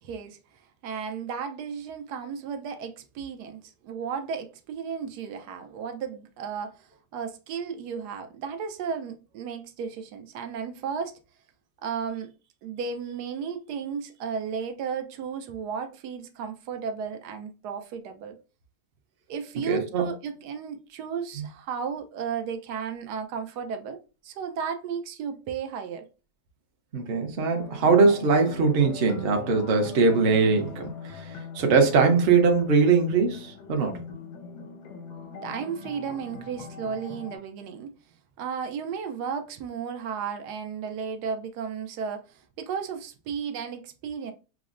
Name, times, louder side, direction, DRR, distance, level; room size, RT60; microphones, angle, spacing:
voice 1, 0.0-0.4 0.8-11.2 11.8-12.3 12.6-18.4 19.3-26.1 35.4-37.9 38.4-44.3, right 6 dB, 85° right, 1.2 m, -34 dB
voice 2, 19.7-20.1 21.4-21.5 26.9-34.0, right 4 dB, 50° right, 0.8 m, -22 dB
sound 1, 27.6-37.4, left 5 dB, 90° left, 1.4 m, -42 dB
6.0 x 2.1 x 2.4 m
omnidirectional pair, 1.7 m